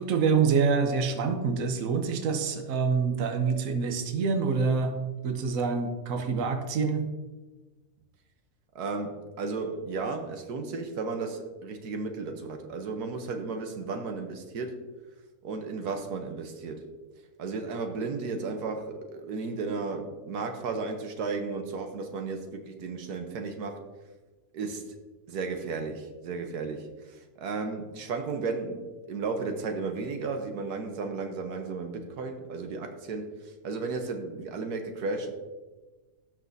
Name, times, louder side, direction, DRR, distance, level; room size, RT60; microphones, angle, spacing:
voice 1, 0.0-4.9 5.2-7.0, right 5 dB, 65° right, 5 dB, 1.3 m, -26 dB
voice 2, 8.7-14.8 15.4-16.8 17.4-23.8 24.5-24.8 25.3-35.3, right 4 dB, 85° right, 5 dB, 1.5 m, -34 dB
17.5 x 6.0 x 2.7 m, 1.2 s
omnidirectional pair, 1.6 m